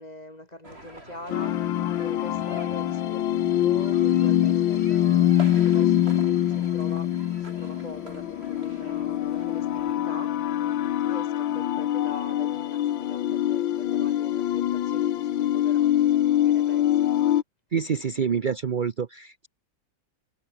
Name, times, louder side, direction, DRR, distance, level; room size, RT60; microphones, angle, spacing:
voice 1, 0.0-1.7 2.0-10.4 11.1-15.9 16.5-17.1, left 1 dB, 20° left, 5.1 m, -43 dB
sound 1, 0.6-9.9, right 1 dB, 30° right, 7.7 m, -46 dB
sound 2, 1.3-17.4, left 12 dB, 90° left, 1.7 m, -24 dB
voice 2, 17.7-19.5, right 6 dB, 55° right, 0.5 m, -27 dB
omnidirectional pair, 2.0 m